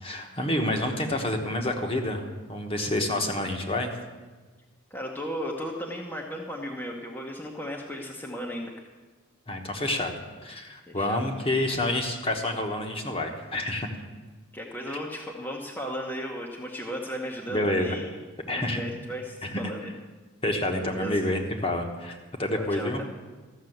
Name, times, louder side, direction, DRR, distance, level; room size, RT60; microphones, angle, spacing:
voice 1, 0.0-3.9 9.5-10.1 10.4-13.9 14.9-15.0 17.5-18.0 18.5-18.8 19.4-19.5 20.4-23.0, left 1 dB, 25° left, 3 dB, 1.2 m, -28 dB
voice 2, 4.9-8.7 10.9-11.2 14.5-18.2 18.5-19.9 20.8-21.2 22.5-23.0, equal, 10° left, -2 dB, 0.9 m, -35 dB
13.5 x 6.6 x 7.9 m, 1.3 s
head